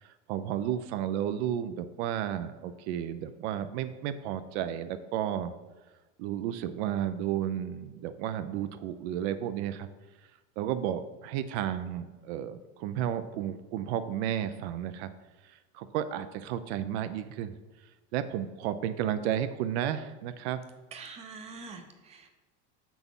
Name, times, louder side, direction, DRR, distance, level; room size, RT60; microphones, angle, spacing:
voice 1, 0.0-5.6 6.2-9.9 10.6-15.1 15.5-17.6 18.1-20.6, right 10 dB, 70° right, 11 dB, 0.5 m, -32 dB
voice 2, 20.9-22.3, right 4 dB, 20° right, 6 dB, 0.5 m, -45 dB
6.9 x 6.0 x 3.6 m, 1.2 s
cardioid pair, 175°, 35 cm